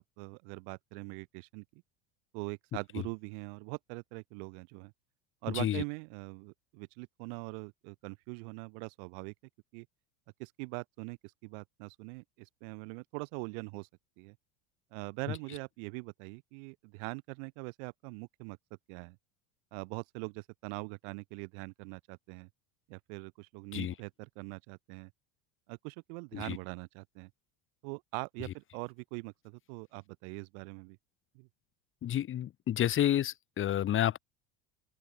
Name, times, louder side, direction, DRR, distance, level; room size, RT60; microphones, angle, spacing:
voice 1, 0.0-1.8 2.3-4.9 5.4-9.3 9.7-9.9 10.4-13.9 14.2-14.4 14.9-18.6 18.9-19.2 19.7-22.5 22.9-25.1 25.7-27.3 27.8-31.0 31.3-31.5, right 37 dB, 70° right, 5.7 m, -42 dB
voice 2, 32.0-34.2, left 11 dB, 35° left, 5.5 m, -30 dB
open air
cardioid pair, 155°, 36 cm